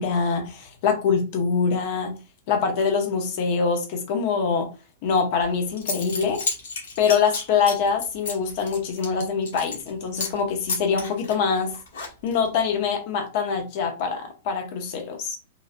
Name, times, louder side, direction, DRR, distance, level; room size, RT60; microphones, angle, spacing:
voice 1, 0.0-2.1 2.5-4.7 5.0-6.4 7.0-11.7 12.2-15.4, left 5 dB, 40° left, 3 dB, 0.6 m, -24 dB
Zipper (clothing) / Coin (dropping), 5.4-5.5 5.8-9.9 10.2-10.4 10.7-12.5, left 4 dB, 75° left, 1.1 m, -32 dB
3.1 x 2.4 x 2.5 m, 0.32 s
supercardioid pair, 170°, 0 cm